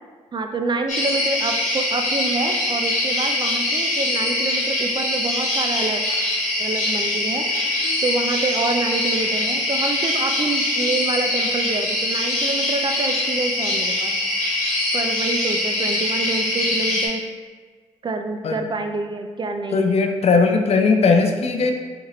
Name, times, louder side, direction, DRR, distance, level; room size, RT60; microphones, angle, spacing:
voice 1, 0.3-6.0 6.6-14.1 14.9-17.2 18.0-20.0, right 3 dB, 35° right, 5 dB, 0.4 m, -27 dB
sound 1, 0.9-17.1, left 1 dB, 70° left, 1.1 m, -23 dB
voice 2, 19.7-21.7, left 4 dB, 50° left, 4 dB, 0.5 m, -18 dB
4.0 x 2.5 x 3.0 m, 1.6 s
supercardioid pair, 55°, 13 cm